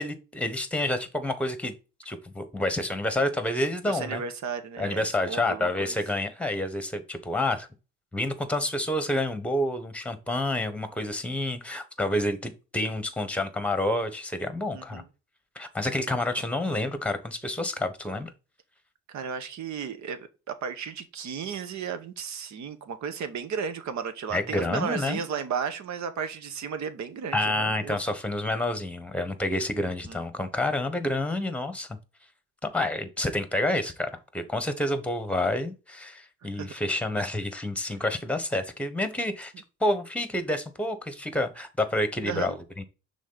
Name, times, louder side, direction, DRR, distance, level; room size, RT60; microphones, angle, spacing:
voice 1, 0.0-1.7 2.0-4.2 4.8-7.7 8.1-15.0 15.5-18.3 24.3-25.2 27.3-32.0 32.6-39.5 39.8-42.8, left 1 dB, 5° left, 1.2 m, -29 dB
voice 2, 3.9-6.0 14.7-15.0 19.1-28.0 30.1-30.2 36.4-36.7 42.2-42.6, right 6 dB, 70° right, 1.1 m, -34 dB
6.3 x 3.8 x 3.9 m
cardioid pair, 90°, 30 cm